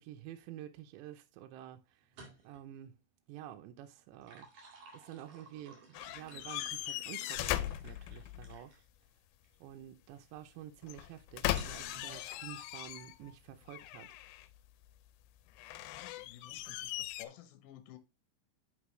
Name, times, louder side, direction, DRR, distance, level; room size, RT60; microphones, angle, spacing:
voice 1, 0.0-2.1 2.4-3.0 3.3-4.5 4.9-8.8 9.6-14.2, right 12 dB, 85° right, 2.9 m, -49 dB
sound 1, 2.0-2.7 4.0-8.8 9.4-9.6 11.6-12.2, right 3 dB, 55° right, 3.6 m, -56 dB
sound 2, 5.9-8.6 10.8-13.3 13.7-14.6 15.6-17.3, left 15 dB, 90° left, 2.9 m, -39 dB
voice 2, 15.8-18.0, left 12 dB, 75° left, 2.3 m, -54 dB
9.6 x 5.3 x 3.2 m
omnidirectional pair, 5.0 m